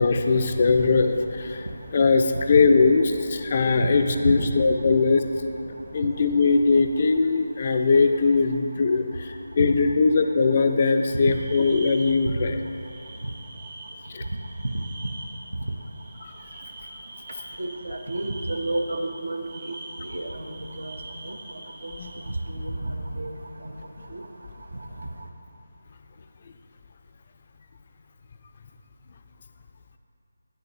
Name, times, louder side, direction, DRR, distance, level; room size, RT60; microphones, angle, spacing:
voice 1, 0.0-1.7 1.9-5.2 5.9-12.5 14.1-14.2 16.2-16.3 22.0-22.1, left 4 dB, 35° left, 6 dB, 0.4 m, -21 dB
sound 1, 0.5-7.2, right 2 dB, 5° right, 0.6 m, -44 dB
sound 2, 11.0-22.4, right 2 dB, 30° right, 1.1 m, -44 dB
voice 2, 17.6-19.7 20.1-21.0 21.2-21.4 21.8-21.9 22.5-23.3 23.6-23.7 24.1-24.2, right 1 dB, 65° right, 4 dB, 0.7 m, -30 dB
9.6 x 6.5 x 2.7 m, 2.6 s
figure-of-eight pair, 155°, 0 cm